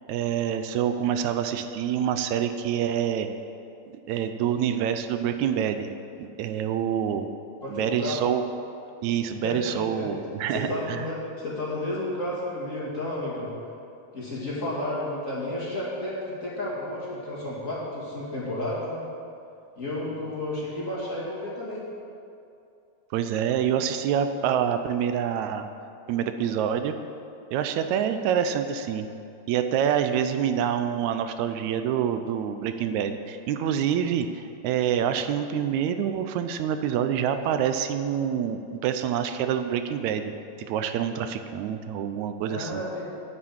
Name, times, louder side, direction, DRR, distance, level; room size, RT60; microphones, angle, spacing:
voice 1, 0.1-3.3 4.1-5.9 6.2-7.3 7.7-8.4 9.0-11.1 23.1-25.7 26.1-27.0 27.5-29.1 29.5-40.3 40.7-42.8, right 9 dB, 85° right, 8 dB, 1.9 m, -26 dB
voice 2, 7.6-8.2 9.4-10.1 10.5-13.5 14.1-19.0 19.8-21.8 42.5-43.1, left 1 dB, 30° left, -6 dB, 2.4 m, -32 dB
9.5 x 8.7 x 7.3 m, 2.5 s
omnidirectional pair, 3.3 m